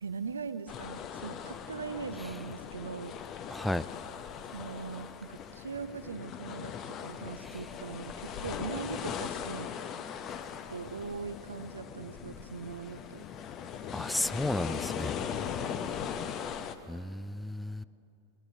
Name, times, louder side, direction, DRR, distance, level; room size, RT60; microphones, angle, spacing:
voice 1, 0.0-3.2 4.5-9.7 10.7-13.3, right 5 dB, 75° right, 13 dB, 0.6 m, -40 dB
sound 1, 0.7-16.8, left 8 dB, 30° left, 0.7 m, -39 dB
voice 2, 3.5-3.9 13.9-15.2 16.9-17.8, left 1 dB, 5° left, 17 dB, 0.3 m, -33 dB
23.0 x 20.5 x 2.7 m, 2.5 s
figure-of-eight pair, 90°, 0 cm